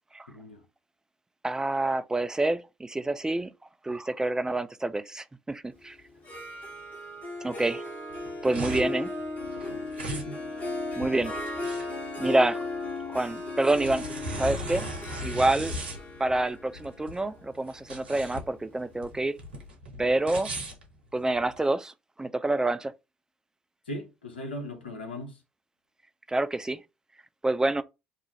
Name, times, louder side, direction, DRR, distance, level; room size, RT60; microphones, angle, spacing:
voice 1, 0.3-0.6 8.8-8.9 9.7-10.4 23.9-25.4, left 1 dB, 90° left, 0.7 m, -39 dB
voice 2, 1.4-3.5 3.8-6.0 7.4-7.8 8.4-9.1 11.0-11.3 12.2-12.6 13.1-14.0 14.4-14.9 15.2-15.8 16.2-19.4 20.0-20.5 21.1-21.9 22.2-22.9 26.3-26.8 27.4-27.8, right 2 dB, 10° right, 0.4 m, -27 dB
Harp, 6.1-19.0, left 2 dB, 35° left, 1.5 m, -36 dB
sound 1, 8.1-21.6, right 1 dB, 85° right, 0.7 m, -38 dB
2.8 x 2.4 x 4.2 m
hypercardioid pair, 55°, 5 cm